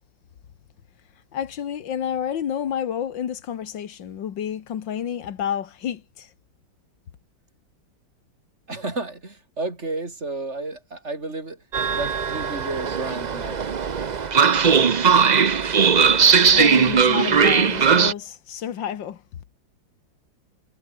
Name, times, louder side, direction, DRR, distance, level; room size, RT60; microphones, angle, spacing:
voice 1, 1.3-6.3 16.5-19.2, left 9 dB, 75° left, 2.1 m, -29 dB
voice 2, 8.7-11.6 11.9-13.6, right 2 dB, 35° right, 4.4 m, -32 dB
Train, 11.7-18.1, right 6 dB, 80° right, 0.4 m, -18 dB
omnidirectional pair, 2.0 m